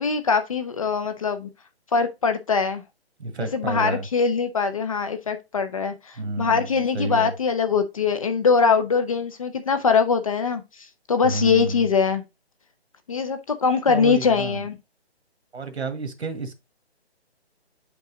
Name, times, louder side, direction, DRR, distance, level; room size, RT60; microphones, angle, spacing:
voice 1, 0.0-1.5 1.9-2.8 3.4-12.2 13.1-14.8, left 5 dB, 30° left, 0.6 m, -22 dB
voice 2, 3.2-4.1 6.2-6.7 6.9-7.3 11.2-11.8 13.9-14.6 15.5-16.6, right 2 dB, 80° right, 1.6 m, -30 dB
5.9 x 5.4 x 3.8 m
hypercardioid pair, 160°, 33 cm